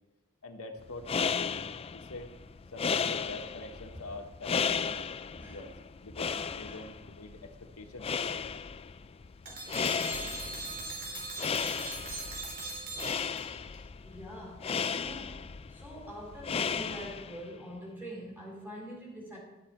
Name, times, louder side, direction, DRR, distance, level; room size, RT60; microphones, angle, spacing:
voice 1, 0.4-2.3 2.7-4.9 5.5-5.7 6.0-8.1, left 2 dB, 85° left, 4 dB, 1.3 m, -45 dB
sound 1, 0.8-17.5, left 6 dB, 25° left, 0.3 m, -35 dB
voice 2, 4.8-5.6 6.6-6.8 14.0-19.4, equal, 10° right, -3 dB, 4.1 m, -45 dB
sound 2, 9.5-13.8, right 3 dB, 40° right, 3.1 m, -40 dB
11.0 x 10.0 x 4.4 m, 0.99 s
head